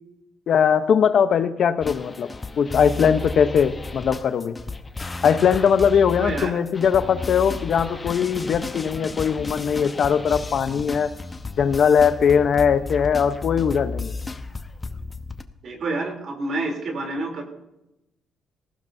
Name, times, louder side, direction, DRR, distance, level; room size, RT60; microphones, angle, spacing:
voice 1, 0.5-2.3 2.6-4.6 5.2-11.1 11.6-14.1, left 7 dB, 60° left, 11 dB, 0.8 m, -20 dB
sound 1, 1.8-15.4, left 3 dB, 25° left, 0.9 m, -33 dB
voice 2, 6.2-6.6 15.6-17.4, right 2 dB, 60° right, 2 dB, 3.3 m, -28 dB
19.5 x 15.5 x 2.7 m, 0.89 s
cardioid pair, 90°, 0 cm